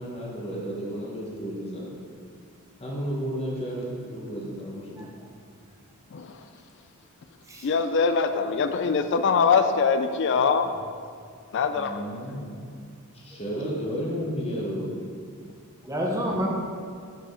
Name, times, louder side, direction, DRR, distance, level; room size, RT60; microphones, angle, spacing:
voice 1, 0.0-1.9 2.8-5.0 11.7-12.5 13.1-14.9, equal, 25° left, -4 dB, 1.2 m, -32 dB
voice 2, 7.6-10.7 11.5-12.0, left 5 dB, 55° left, 8 dB, 0.4 m, -23 dB
voice 3, 15.9-16.5, equal, 15° right, -2 dB, 0.9 m, -29 dB
7.0 x 5.0 x 5.1 m, 2.2 s
head